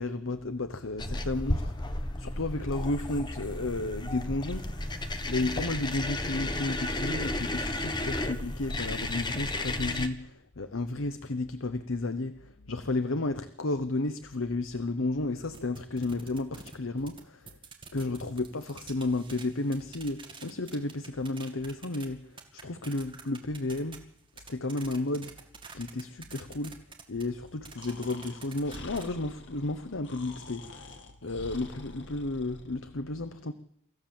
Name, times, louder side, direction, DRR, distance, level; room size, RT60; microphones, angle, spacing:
voice 1, 0.0-5.0 5.3-17.6 17.9-24.0 24.4-25.4 25.7-26.8 27.1-33.5, left 2 dB, 85° left, 1.0 m, -33 dB
sound 1, 1.0-10.1, left 1 dB, 20° left, 1.2 m, -33 dB
sound 2, 15.5-17.2 17.5-22.0 22.4-29.1, right 5 dB, 25° right, 2.2 m, -47 dB
Breathing, 27.8-32.9, left 2 dB, 60° left, 2.0 m, -47 dB
24.0 x 14.5 x 7.3 m
head